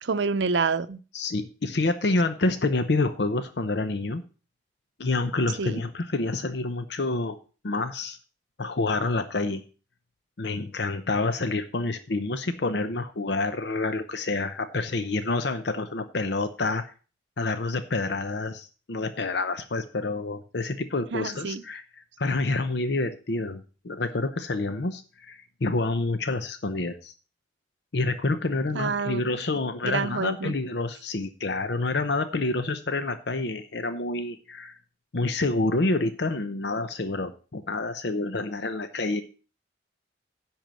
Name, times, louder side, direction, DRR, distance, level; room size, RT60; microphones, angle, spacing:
voice 1, 0.0-1.0 5.6-5.8 21.1-21.6 28.7-29.2 29.8-30.5, right 4 dB, 75° right, 0.6 m, -27 dB
voice 2, 1.1-4.2 5.0-7.4 7.6-8.2 8.6-9.6 10.4-16.9 17.4-21.8 22.2-27.1 27.9-34.8 35.1-39.2, left 2 dB, 65° left, 0.7 m, -28 dB
10.5 x 4.5 x 7.6 m
head